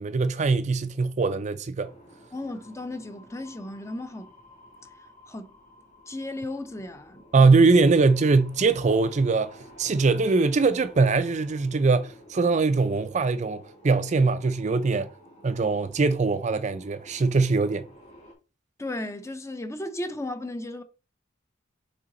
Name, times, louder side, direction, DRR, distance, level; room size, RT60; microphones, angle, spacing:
voice 1, 0.0-1.9 7.3-15.1 15.4-17.9, right 3 dB, 35° right, 0.4 m, -22 dB
sound 1, 1.8-18.3, left 1 dB, 35° left, 2.4 m, -51 dB
voice 2, 2.3-4.3 5.3-5.5 6.1-7.2 18.8-20.8, left 1 dB, 15° left, 0.5 m, -35 dB
6.9 x 3.9 x 3.8 m
head